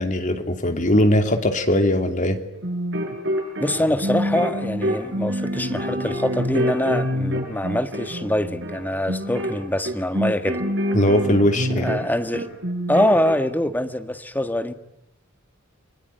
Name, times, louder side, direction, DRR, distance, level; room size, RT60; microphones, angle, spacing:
voice 1, 0.0-2.4 10.9-11.9, left 1 dB, 40° left, 2.9 m, -20 dB
sound 1, 2.5-12.1 12.3-13.3, equal, 60° right, 7.7 m, -26 dB
voice 2, 3.6-10.6 11.8-12.5 12.9-14.7, left 1 dB, 10° left, 1.6 m, -24 dB
29.5 x 21.5 x 9.2 m
head